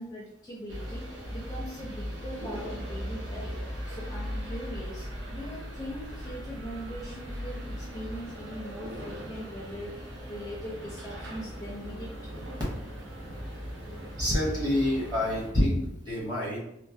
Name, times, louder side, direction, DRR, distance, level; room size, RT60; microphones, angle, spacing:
voice 1, 0.0-3.5 3.9-10.0 10.3-12.3, equal, 20° left, -4 dB, 0.4 m, -41 dB
sound 1, 0.7-15.5, equal, 75° right, 0.7 m, -38 dB
voice 2, 14.2-16.6, left 1 dB, 20° right, -5 dB, 0.9 m, -27 dB
3.0 x 2.1 x 2.7 m, 0.79 s
head